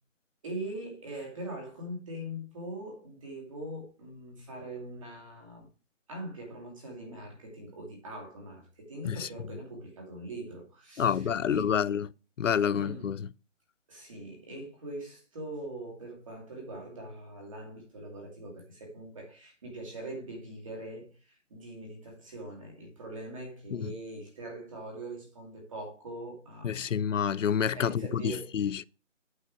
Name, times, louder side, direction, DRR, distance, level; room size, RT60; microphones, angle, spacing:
voice 1, 0.4-5.7 6.1-12.0 12.7-13.2 13.9-27.0 27.7-28.5, right 1 dB, 25° right, 2.6 m, -42 dB
voice 2, 11.0-12.1 12.4-13.3 23.7-23.9 26.6-28.9, left 8 dB, 80° left, 0.6 m, -28 dB
8.4 x 4.9 x 4.6 m
hypercardioid pair, 175°, 37 cm